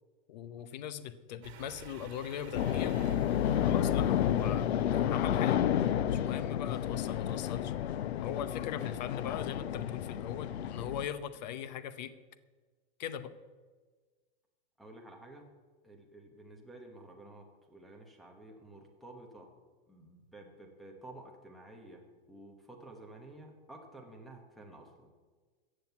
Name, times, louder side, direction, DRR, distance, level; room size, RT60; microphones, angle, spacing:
voice 1, 0.3-3.0 3.7-5.7 6.1-7.7 8.2-12.1 13.0-13.3, left 9 dB, 45° left, 14 dB, 0.8 m, -40 dB
sound 1, 1.4-5.3, right 8 dB, 85° right, 1.7 m, -52 dB
sound 2, 2.5-11.1, left 10 dB, 80° left, 0.8 m, -31 dB
voice 2, 6.2-6.5 8.7-8.9 11.4-11.6 14.8-15.5 15.8-19.5 19.9-25.1, right 2 dB, ahead, -1 dB, 1.1 m, -52 dB
14.5 x 7.8 x 8.2 m, 1.4 s
supercardioid pair, 175°, 31 cm